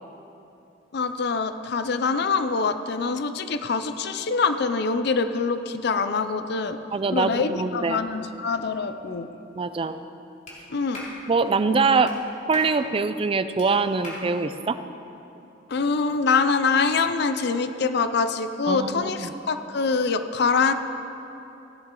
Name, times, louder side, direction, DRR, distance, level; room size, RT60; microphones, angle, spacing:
voice 1, 0.9-6.8 7.1-9.3 10.7-11.0 15.7-20.7, left 4 dB, 60° left, 10 dB, 0.5 m, -24 dB
voice 2, 6.9-8.0 9.6-10.0 11.3-12.1 12.5-14.8 18.7-19.3, right 4 dB, 30° right, 11 dB, 0.4 m, -23 dB
Clapping, 10.5-10.6 10.9-11.2 12.0-12.2 12.5-12.7 13.6-13.7 14.0-14.2, left 1 dB, 40° left, 2.7 m, -38 dB
16.0 x 10.5 x 3.8 m, 2.9 s
head